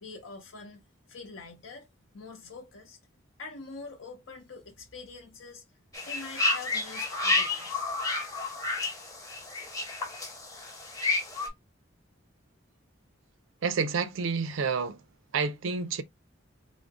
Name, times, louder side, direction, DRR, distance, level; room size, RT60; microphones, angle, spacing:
voice 1, 0.0-0.8 1.1-1.9 2.1-3.0 3.4-5.6 6.0-7.9, left 4 dB, 80° left, 0.8 m, -44 dB
sound 1, 5.9-11.5, left 2 dB, 15° left, 0.8 m, -30 dB
voice 2, 13.6-15.0 15.3-16.0, right 5 dB, 75° right, 0.4 m, -29 dB
3.6 x 2.0 x 3.5 m
head